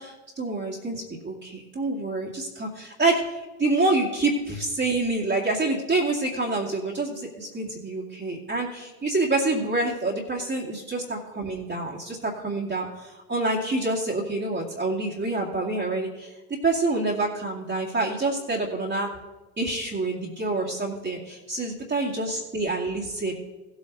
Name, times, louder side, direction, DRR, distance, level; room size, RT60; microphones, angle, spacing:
voice 1, 0.0-16.3 16.6-19.1 19.6-23.3, right 2 dB, 25° right, -4 dB, 2.1 m, -27 dB
15.5 x 8.2 x 3.9 m, 1.1 s
supercardioid pair, 85°, 48 cm